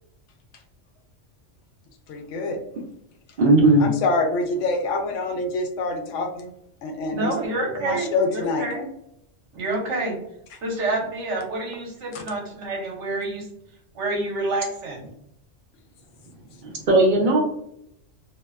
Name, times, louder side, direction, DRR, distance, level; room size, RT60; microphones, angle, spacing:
voice 1, 2.1-2.6 3.8-6.5 6.8-7.3 7.7-8.7 12.1-12.2, left 3 dB, 80° left, 3 dB, 0.9 m, -26 dB
voice 2, 3.4-3.9 16.6-17.4, right 2 dB, 55° right, -1 dB, 0.5 m, -17 dB
voice 3, 7.1-8.9 9.5-10.2 10.6-13.4 13.9-15.1, right 2 dB, 70° right, -1 dB, 1.1 m, -28 dB
2.6 x 2.1 x 2.3 m, 0.75 s
omnidirectional pair, 1.3 m